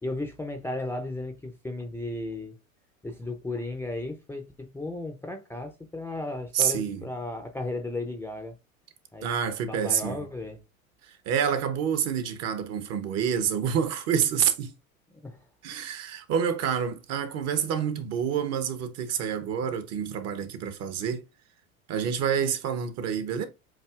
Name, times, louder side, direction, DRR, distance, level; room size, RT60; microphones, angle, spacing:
voice 1, 0.0-2.6 3.0-8.5 9.1-9.3 9.7-10.6 15.2-15.4, left 2 dB, 5° left, 0.6 m, -35 dB
voice 2, 6.5-7.0 9.2-10.3 11.0-14.7 15.6-21.3 21.9-23.5, right 8 dB, 40° right, 0.9 m, -28 dB
7.5 x 2.7 x 2.4 m
hypercardioid pair, 95°, 42 cm